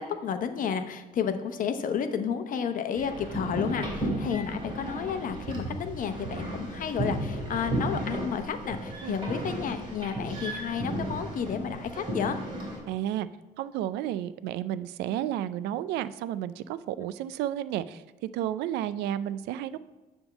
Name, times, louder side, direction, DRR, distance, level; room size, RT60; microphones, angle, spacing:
voice 1, 0.0-12.4, left 7 dB, 55° left, 9 dB, 0.8 m, -31 dB
sound 1, 2.9-12.8, right 1 dB, 30° right, 3.1 m, -34 dB
voice 2, 12.9-13.3 13.6-19.8, right 11 dB, 85° right, 15 dB, 0.4 m, -32 dB
9.9 x 3.6 x 7.2 m, 1.2 s
cardioid pair, 110°, 17 cm